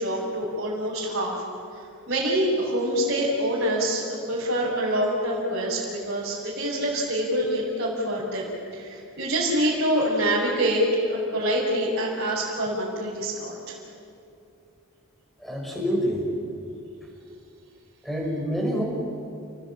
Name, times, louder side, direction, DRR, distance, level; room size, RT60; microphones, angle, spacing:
voice 1, 0.0-1.3 2.1-13.7, right 1 dB, 50° right, -7 dB, 5.9 m, -26 dB
voice 2, 15.4-16.2 18.0-18.8, equal, ahead, -1 dB, 5.7 m, -27 dB
29.5 x 20.0 x 8.9 m, 2.7 s
head